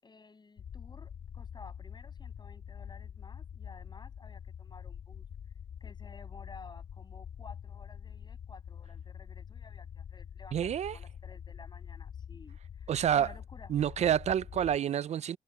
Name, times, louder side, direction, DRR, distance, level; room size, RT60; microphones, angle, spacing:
voice 1, 0.0-5.2 5.8-10.6 10.9-13.7, left 4 dB, 35° left, 8.0 m, -54 dB
sound 1, 0.6-14.8, left 8 dB, 65° left, 2.5 m, -45 dB
voice 2, 10.5-11.0 12.9-13.3 13.7-15.4, right 9 dB, 60° right, 0.5 m, -28 dB
cardioid pair, 65°, 13 cm